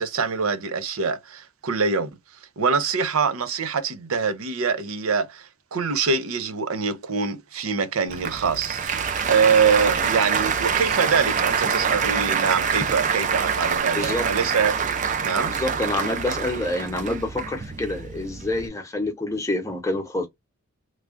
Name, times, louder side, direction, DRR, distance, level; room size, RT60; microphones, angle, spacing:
voice 1, 0.0-2.1 2.6-14.7 15.2-15.5, right 5 dB, 85° right, 0.6 m, -24 dB
Applause, 8.1-18.7, right 6 dB, 35° right, 0.4 m, -25 dB
voice 2, 15.5-20.3, left 2 dB, 15° left, 0.8 m, -27 dB
3.1 x 2.2 x 2.4 m
head